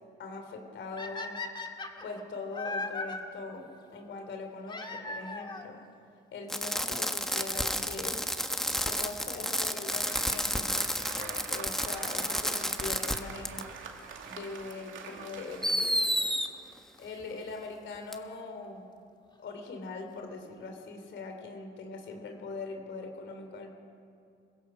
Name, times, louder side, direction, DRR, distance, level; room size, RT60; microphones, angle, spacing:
voice 1, 0.2-1.4 2.0-5.8 6.3-8.2 8.8-13.7 14.2-16.3 17.0-18.9 19.4-23.7, left 3 dB, 70° left, 4 dB, 3.3 m, -41 dB
sound 1, 1.0-3.2 4.7-5.7 6.7-6.8 7.4-7.5 7.7-7.8 9.7-10.0 12.8-12.9 13.9-14.0 15.5-15.6 15.8-15.9 16.2-16.3 16.5-16.6 16.7-16.8 17.0-17.1 17.3-17.4, left 3 dB, 25° left, 2.1 m, -38 dB
Fireworks, 6.5-13.2 13.4-13.6 14.7-14.8 15.6-16.5 18.1-18.2, equal, ahead, 1.3 m, -31 dB
Applause, 9.3-16.8, right 6 dB, 80° right, 2.4 m, -45 dB
26.5 x 16.5 x 6.4 m, 2.5 s
cardioid pair, 90°, 20 cm